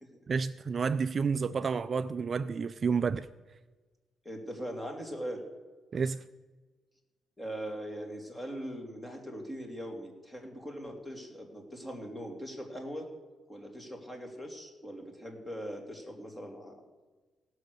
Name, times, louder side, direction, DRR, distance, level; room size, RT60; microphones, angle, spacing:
voice 1, 0.3-3.3 5.9-6.2, right 5 dB, 45° right, 0.4 m, -30 dB
voice 2, 4.2-5.4 7.4-13.1 13.5-16.8, equal, 15° left, 2.6 m, -41 dB
17.0 x 6.4 x 6.6 m
cardioid pair, 90°, 0 cm